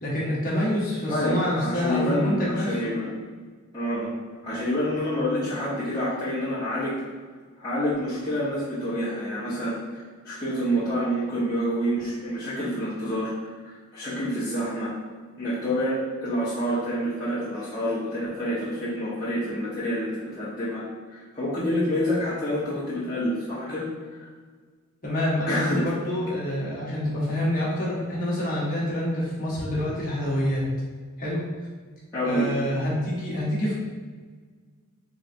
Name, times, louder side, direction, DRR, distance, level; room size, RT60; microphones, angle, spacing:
voice 1, 0.0-2.9 25.0-30.7 31.2-31.4 32.2-33.7, left 1 dB, 45° left, -6 dB, 1.1 m, -27 dB
voice 2, 1.1-3.1 3.7-4.1 4.4-7.0 7.6-13.3 13.9-14.9 15.4-20.8 21.1-23.9 25.5-25.9 32.1-32.5, equal, 20° left, -13 dB, 1.0 m, -27 dB
3.8 x 3.3 x 2.6 m, 1.5 s
head